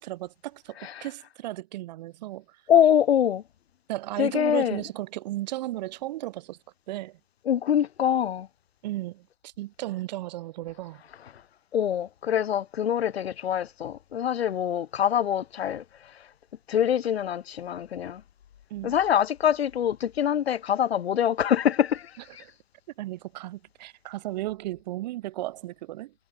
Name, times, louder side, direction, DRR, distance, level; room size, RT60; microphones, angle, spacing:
voice 1, 0.0-2.4 3.9-6.6 6.9-7.2 8.8-11.0 18.7-18.9 22.4-22.5 23.0-26.1, right 16 dB, 45° right, 3.0 m, -35 dB
voice 2, 2.7-3.4 4.2-4.8 7.5-8.5 11.7-15.8 16.7-18.2 18.8-22.1, left 9 dB, 85° left, 1.2 m, -24 dB
hypercardioid pair, 160°, 30 cm